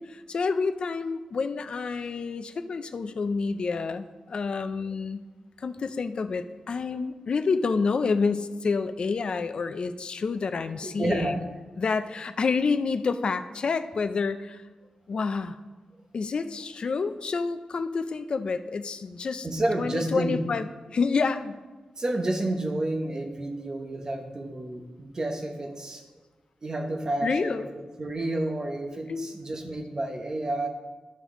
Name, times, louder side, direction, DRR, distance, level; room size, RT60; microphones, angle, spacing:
voice 1, 0.0-5.2 5.6-11.3 11.8-14.6 15.1-15.6 16.1-19.5 19.8-20.7 20.9-21.6 27.2-27.7 29.1-29.3, left 4 dB, 45° left, 10 dB, 0.4 m, -28 dB
voice 2, 11.0-11.4 19.4-20.4 22.0-26.1 26.6-27.7 28.0-30.7, right 1 dB, 30° right, 3 dB, 0.9 m, -30 dB
12.0 x 5.2 x 3.7 m, 1.2 s
wide cardioid pair, 160°, 2 cm